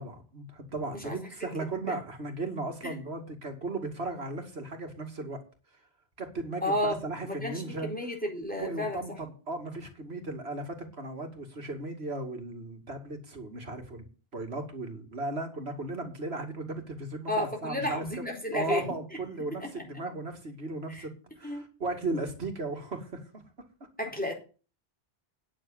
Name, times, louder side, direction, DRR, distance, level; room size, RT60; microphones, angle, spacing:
voice 1, 0.0-5.4 6.2-7.9 8.5-14.1 14.3-18.0 18.5-21.1 21.4-23.4, right 2 dB, 80° right, 5 dB, 2.8 m, -36 dB
voice 2, 6.6-7.0 7.3-9.2 17.3-19.0 19.5-19.7 20.9-21.0 21.4-21.6 24.0-24.3, left 1 dB, 10° left, 1 dB, 4.3 m, -32 dB
9.8 x 7.6 x 8.8 m, 0.36 s
omnidirectional pair, 1.0 m